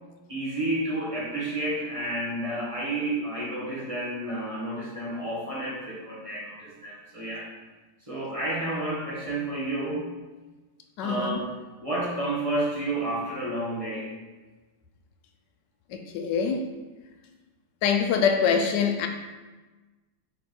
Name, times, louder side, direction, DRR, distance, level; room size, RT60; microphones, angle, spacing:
voice 1, 0.3-7.5 8.0-10.0 11.0-11.5 11.8-14.1, right 1 dB, 20° right, -7 dB, 1.5 m, -30 dB
voice 2, 11.0-11.4 15.9-16.6 17.8-19.1, left 6 dB, 85° left, 5 dB, 1.3 m, -24 dB
4.8 x 4.5 x 4.6 m, 1.2 s
omnidirectional pair, 1.9 m